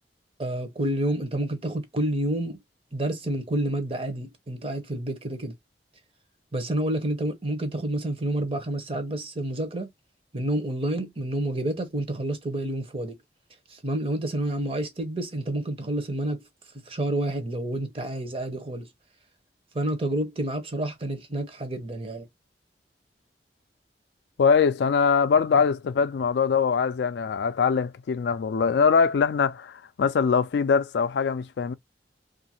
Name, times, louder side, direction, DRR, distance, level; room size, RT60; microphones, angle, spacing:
voice 1, 0.4-2.6 2.9-5.5 6.5-9.9 10.3-13.2 13.7-16.4 16.9-18.9 19.7-22.3, right 1 dB, 30° right, 0.7 m, -29 dB
voice 2, 24.4-31.7, left 6 dB, 75° left, 0.3 m, -22 dB
2.7 x 2.5 x 2.7 m
head